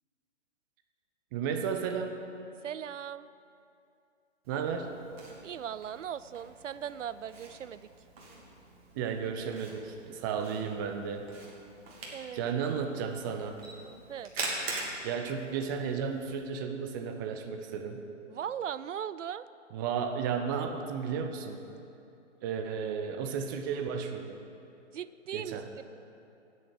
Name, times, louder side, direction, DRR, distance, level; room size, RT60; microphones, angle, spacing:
voice 1, 1.3-2.2 4.5-4.9 8.9-11.2 12.3-13.6 15.0-18.0 19.7-21.6 22.4-24.4 25.3-25.6, right 6 dB, 15° right, 6 dB, 0.6 m, -33 dB
voice 2, 2.6-3.3 5.4-7.9 12.1-12.4 14.1-14.3 18.3-19.5 24.9-25.8, right 9 dB, 75° right, 16 dB, 0.5 m, -38 dB
Camera, 4.4-16.4, right 2 dB, 50° right, 3.1 m, -44 dB
13.0 x 8.5 x 7.5 m, 2.7 s
figure-of-eight pair, 135°, 38 cm